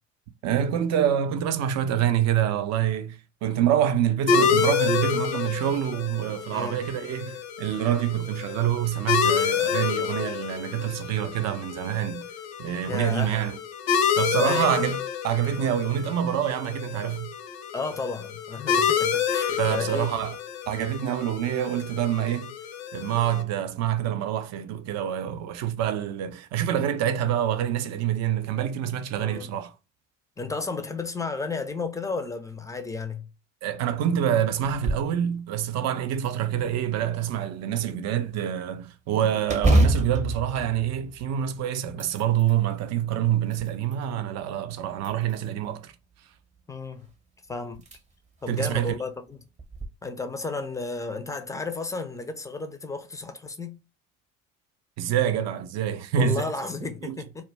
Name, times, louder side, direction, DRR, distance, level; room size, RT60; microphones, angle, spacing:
voice 1, 0.4-12.3 12.6-13.6 14.2-17.3 19.6-20.4 20.7-22.5 22.9-29.7 33.6-45.9 48.5-48.9 55.0-56.5 57.0-57.2, right 10 dB, 45° right, 0.5 m, -26 dB
sound 1, 4.3-23.4, left 7 dB, 70° left, 0.6 m, -28 dB
voice 2, 12.8-13.3 14.4-14.7 17.7-20.1 29.2-29.5 30.4-33.3 39.2-39.4 46.7-47.1 47.5-47.8 48.4-49.4 50.0-53.8 56.2-57.4, left 4 dB, 10° left, 0.4 m, -33 dB
sound 2, 34.6-35.2 35.6-35.7 36.2-37.1 39.5-41.5 41.9-42.6 43.2-44.1 45.0-45.7 47.1-47.2 47.7-48.0 48.4-48.5 49.6-49.9, right 1 dB, 20° right, 0.8 m, -26 dB
2.4 x 2.2 x 3.1 m
hypercardioid pair, 60°, 36 cm